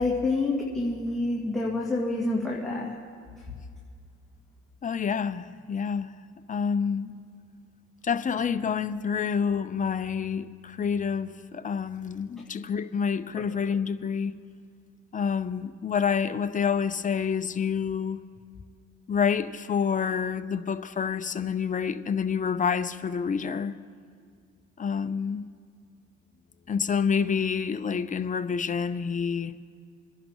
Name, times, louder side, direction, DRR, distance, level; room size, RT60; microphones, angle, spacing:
voice 1, 0.0-2.9, left 2 dB, ahead, 2.0 m, -27 dB
voice 2, 4.8-6.1 6.5-7.1 8.0-14.3 15.1-18.2 19.1-23.8 24.8-25.4 26.7-29.6, left 6 dB, 25° left, 0.6 m, -28 dB
27.5 x 11.0 x 3.1 m
cardioid pair, 85°, 30 cm